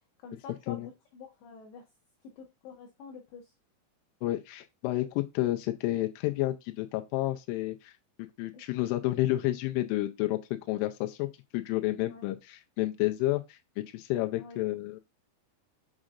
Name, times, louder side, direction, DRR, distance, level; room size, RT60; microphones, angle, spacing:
voice 1, 0.2-0.8 1.1-1.8 2.4-3.5 12.0-12.2 14.4-14.6, left 5 dB, 70° left, 3.0 m, -47 dB
voice 2, 4.2-8.0 8.4-10.4 10.7-15.0, left 16 dB, 90° left, 3.1 m, -30 dB
7.4 x 6.3 x 2.4 m
omnidirectional pair, 5.6 m